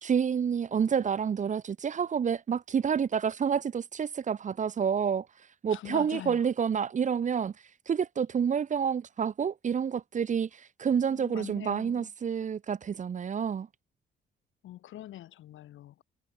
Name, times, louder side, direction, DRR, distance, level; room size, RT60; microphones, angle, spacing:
voice 1, 0.0-5.3 5.6-7.5 7.9-13.7, right 7 dB, 40° right, 0.7 m, -29 dB
voice 2, 5.7-6.5 11.1-12.1 14.6-16.0, left 13 dB, 80° left, 4.8 m, -43 dB
cardioid pair, 90°, 20 cm